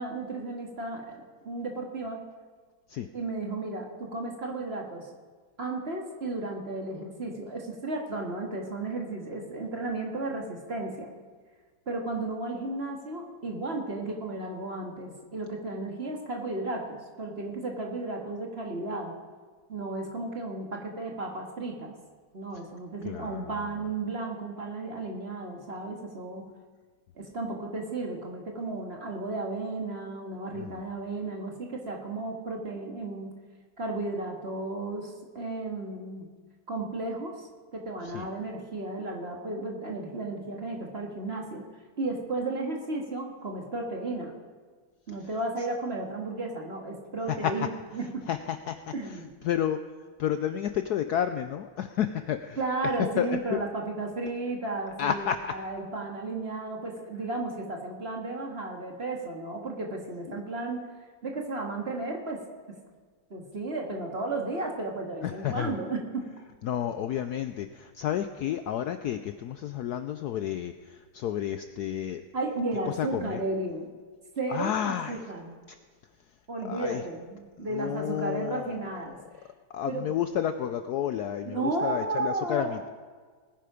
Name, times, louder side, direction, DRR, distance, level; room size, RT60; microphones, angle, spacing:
voice 1, 0.0-2.2 3.1-5.0 5.6-11.1 11.9-19.1 19.7-21.9 22.3-26.4 27.2-33.3 33.8-36.3 36.7-41.6 42.0-44.3 45.1-48.3 48.9-49.3 52.6-55.3 55.5-60.9 61.2-62.4 63.3-66.3 72.3-73.9 74.4-75.5 76.5-79.2 79.9-80.1 81.4-82.7, right 2 dB, 35° right, 1 dB, 1.9 m, -34 dB
voice 2, 23.0-23.9 30.5-30.7 38.0-38.3 47.3-47.7 48.3-49.8 50.2-52.6 53.2-53.6 55.0-55.6 65.2-65.7 66.6-72.2 72.9-73.4 74.5-75.2 75.7-75.8 76.6-77.0 77.6-79.0 79.7-82.9, left 10 dB, 75° left, 9 dB, 0.9 m, -31 dB
19.0 x 10.5 x 5.0 m, 1.5 s
omnidirectional pair, 2.1 m